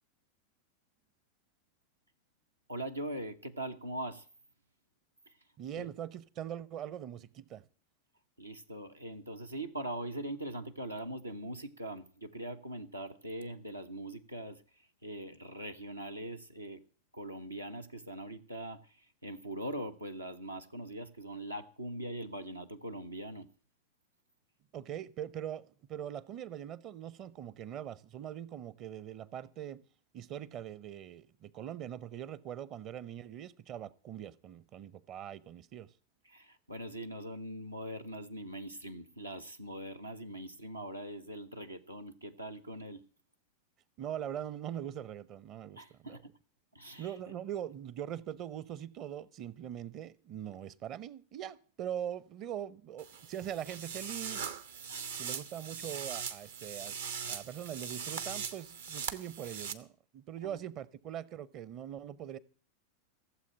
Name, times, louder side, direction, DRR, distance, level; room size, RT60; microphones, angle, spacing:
voice 1, 2.7-4.3 5.3-5.4 5.8-5.9 8.4-16.8 17.1-23.5 36.2-43.0 45.8-46.3 46.7-47.2 54.9-55.2 60.4-60.6, right 1 dB, 85° right, 1.2 m, -42 dB
voice 2, 5.6-7.6 24.7-29.8 30.1-35.9 44.0-46.2 47.0-54.5 55.2-57.0 57.3-62.4, right 10 dB, 35° right, 0.8 m, -42 dB
sound 1, 53.0-59.7, right 7 dB, 65° right, 1.0 m, -40 dB
16.0 x 7.8 x 8.7 m
figure-of-eight pair, 90°, 0 cm